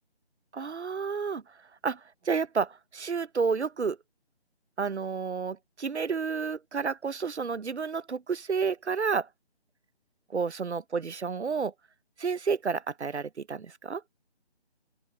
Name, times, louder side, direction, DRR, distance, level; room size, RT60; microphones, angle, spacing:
voice 1, 0.5-1.4 1.8-4.0 4.8-9.3 10.3-11.7 12.2-14.0, right 5 dB, 85° right, 0.7 m, -30 dB
open air
figure-of-eight pair, 160°, 33 cm